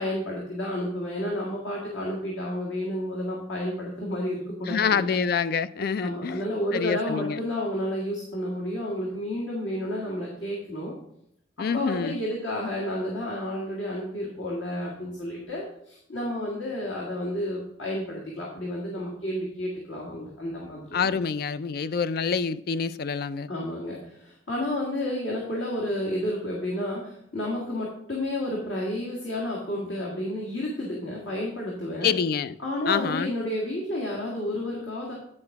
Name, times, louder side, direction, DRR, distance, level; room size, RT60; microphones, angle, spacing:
voice 1, 0.0-5.2 6.0-10.9 11.6-21.0 23.5-32.1 32.6-35.1, left 1 dB, 90° left, 1.8 m, -31 dB
voice 2, 4.7-6.4 6.7-7.4 11.6-12.2 20.9-23.5 32.0-32.6 32.9-33.3, left 6 dB, 55° left, 0.4 m, -26 dB
9.8 x 4.8 x 4.7 m
head